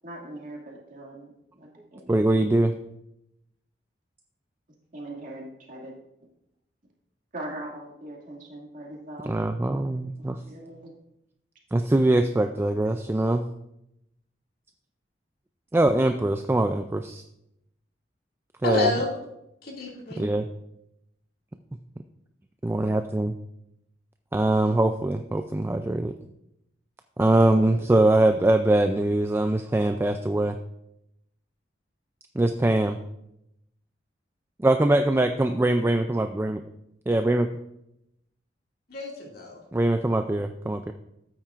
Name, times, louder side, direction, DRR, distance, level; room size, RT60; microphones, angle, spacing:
voice 1, 0.0-2.3 4.9-6.0 7.3-9.5 10.2-10.9, right 1 dB, 45° right, -2 dB, 2.2 m, -41 dB
voice 2, 2.1-2.7 9.3-10.4 11.7-13.4 15.7-17.2 18.6-18.9 20.2-20.5 22.6-23.3 24.3-26.1 27.2-30.6 32.3-33.0 34.6-36.6 37.1-37.5 39.7-40.9, right 1 dB, 15° right, 7 dB, 0.3 m, -22 dB
voice 3, 18.6-19.1 19.6-20.2 27.4-27.6 27.9-28.0 38.9-39.6, left 3 dB, 55° left, -2 dB, 2.3 m, -29 dB
13.0 x 8.9 x 2.5 m, 0.82 s
head